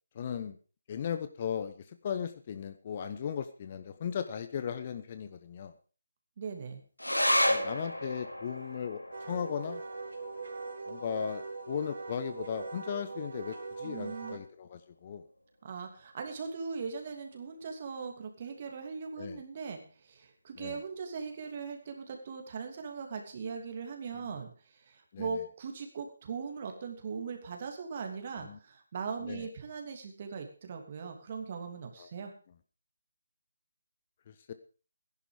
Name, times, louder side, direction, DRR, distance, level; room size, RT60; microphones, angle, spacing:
voice 1, 0.1-0.6 0.9-5.7 7.5-9.8 10.9-15.2 19.2-19.4 20.6-20.8 24.1-24.3 25.1-25.3 28.4-28.6 29.2-29.5 32.0-32.1 34.3-34.5, left 8 dB, 30° left, 10 dB, 0.9 m, -37 dB
voice 2, 6.4-6.8 13.8-14.4 15.6-32.3, right 5 dB, 35° right, 4 dB, 2.9 m, -40 dB
sound 1, 7.0-13.8 14.1-14.2 14.5-15.2 15.8-15.9, left 1 dB, 90° left, 3.1 m, -34 dB
Wind instrument woodwind instrument, 9.1-14.4, right 4 dB, 55° right, 3.7 m, -41 dB
15.5 x 11.0 x 5.0 m, 0.38 s
figure-of-eight pair, 150°, 0 cm